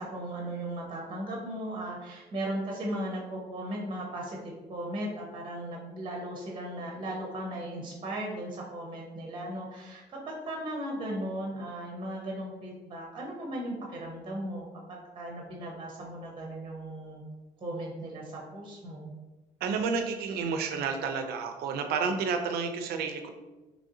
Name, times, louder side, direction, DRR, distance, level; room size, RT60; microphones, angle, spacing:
voice 1, 0.0-17.2 17.6-19.1, right 1 dB, 30° right, -1 dB, 0.6 m, -37 dB
voice 2, 19.6-23.3, right 5 dB, 70° right, 6 dB, 0.4 m, -30 dB
3.0 x 2.6 x 2.6 m, 1.2 s
cardioid pair, 110°, 17 cm